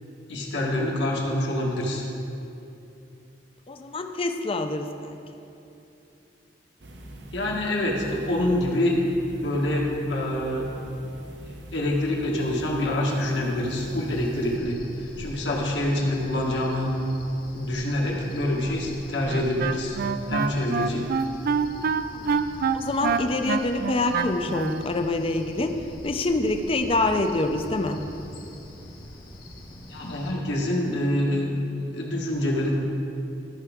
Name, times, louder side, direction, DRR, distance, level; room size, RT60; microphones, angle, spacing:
voice 1, 0.3-2.0 7.3-9.0 9.4-10.7 11.7-14.8 15.2-16.9 17.5-20.0 20.3-21.0 29.9-31.6 31.9-32.7, left 1 dB, 70° left, -3 dB, 1.6 m, -26 dB
voice 2, 3.7-5.2 22.1-22.4 22.7-25.7 26.0-28.0, left 2 dB, 30° left, 6 dB, 0.5 m, -26 dB
sound 1, 6.8-14.6, right 1 dB, 70° right, 0.8 m, -43 dB
Cricket, 13.7-30.3, left 1 dB, 55° left, 1.3 m, -43 dB
Wind instrument woodwind instrument, 19.2-24.9, right 5 dB, 55° right, 0.4 m, -26 dB
14.0 x 6.0 x 3.6 m, 2.8 s
head